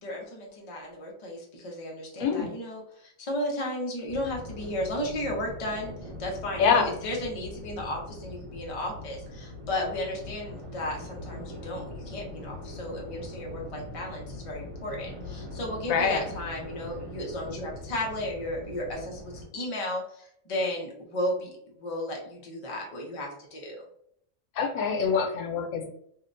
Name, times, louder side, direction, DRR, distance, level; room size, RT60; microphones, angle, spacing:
voice 1, 0.0-6.7 7.0-21.5 21.8-23.8, left 1 dB, 35° left, -1 dB, 0.5 m, -34 dB
sound 1, 4.1-19.5, left 1 dB, 60° right, 1.2 m, -41 dB
voice 2, 6.6-6.9 15.9-16.2 24.6-25.9, left 6 dB, 90° left, 3 dB, 1.0 m, -25 dB
2.7 x 2.1 x 2.5 m, 0.67 s
omnidirectional pair, 1.4 m